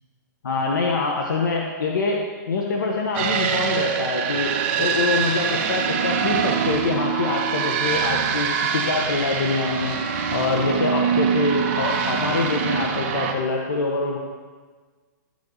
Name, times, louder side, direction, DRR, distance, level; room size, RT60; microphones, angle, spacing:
voice 1, 0.4-2.2 2.5-4.5 4.8-10.0 10.3-14.2, left 3 dB, 80° left, 0 dB, 1.4 m, -25 dB
sound 1, 3.1-13.3, right 7 dB, 35° right, 0.9 m, -24 dB
12.5 x 8.7 x 4.1 m, 1.4 s
hypercardioid pair, 170°, 10 cm